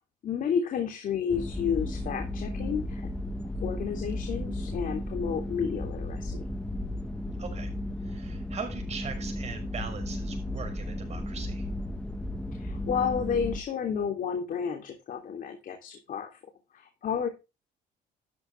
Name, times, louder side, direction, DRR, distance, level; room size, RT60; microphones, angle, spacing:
voice 1, 0.2-3.1 3.6-6.5 12.5-16.4 16.7-17.3, left 7 dB, 55° left, 4 dB, 3.2 m, -31 dB
sound 1, 1.3-13.6, left 1 dB, 5° left, 1.5 m, -34 dB
voice 2, 7.4-7.7 8.0-11.7, right 5 dB, 40° right, 5 dB, 5.9 m, -40 dB
13.0 x 9.1 x 3.5 m, 0.26 s
cardioid pair, 110°, 17 cm